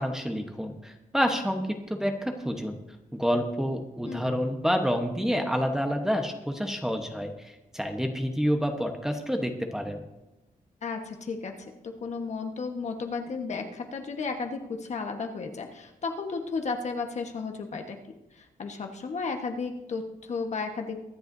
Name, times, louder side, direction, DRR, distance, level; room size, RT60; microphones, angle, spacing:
voice 1, 0.0-2.8 3.1-10.0, equal, 5° right, 4 dB, 1.1 m, -28 dB
voice 2, 10.8-11.5 11.8-18.0 18.4-21.0, left 4 dB, 50° left, 4 dB, 1.3 m, -33 dB
23.5 x 10.0 x 2.7 m, 0.97 s
wide cardioid pair, 140°, 15 cm